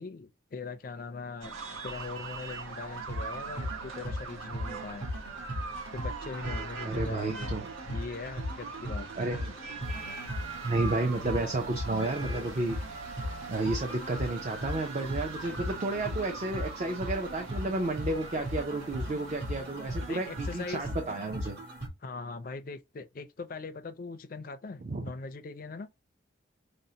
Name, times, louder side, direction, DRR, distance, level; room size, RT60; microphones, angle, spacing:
voice 1, 0.0-1.6 1.8-5.1 5.9-7.5 7.9-9.1 20.0-20.8 22.0-25.9, left 4 dB, 45° left, 0.4 m, -41 dB
sound 1, 1.4-21.0, right 4 dB, 90° right, 0.8 m, -42 dB
sound 2, 3.0-21.9, equal, 55° right, 1.3 m, -38 dB
voice 2, 6.8-7.7 9.2-9.5 10.6-12.8 13.5-21.6 24.8-25.1, right 2 dB, 35° right, 0.5 m, -32 dB
5.1 x 2.1 x 2.8 m
head